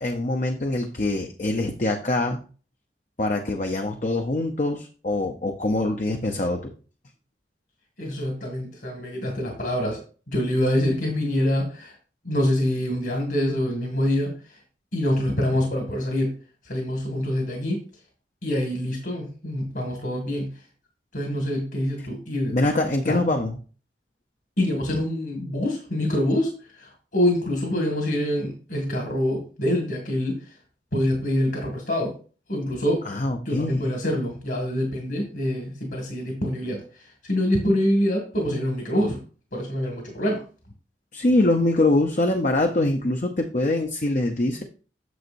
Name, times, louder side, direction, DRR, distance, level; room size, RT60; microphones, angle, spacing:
voice 1, 0.0-2.4 3.2-6.7 22.5-23.6 33.0-33.8 41.1-44.6, left 2 dB, 45° left, 4 dB, 0.7 m, -24 dB
voice 2, 8.0-10.0 10.3-12.0 12.2-14.6 14.9-16.3 16.6-17.8 18.4-20.5 21.1-22.6 23.0-23.2 24.6-30.6 30.9-32.1 32.5-33.2 33.5-39.2 39.5-40.4, left 1 dB, 60° left, 1 dB, 2.1 m, -25 dB
9.4 x 7.1 x 2.6 m, 0.38 s
head